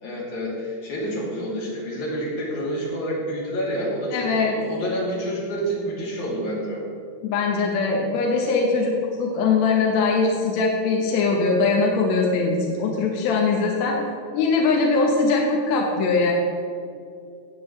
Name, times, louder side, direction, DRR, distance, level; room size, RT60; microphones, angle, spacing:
voice 1, 0.0-6.8, equal, 85° left, -5 dB, 4.1 m, -28 dB
voice 2, 4.1-4.6 7.2-14.0 14.3-16.3, left 4 dB, 70° left, -1 dB, 2.2 m, -21 dB
17.0 x 7.7 x 3.2 m, 2.5 s
omnidirectional pair, 3.3 m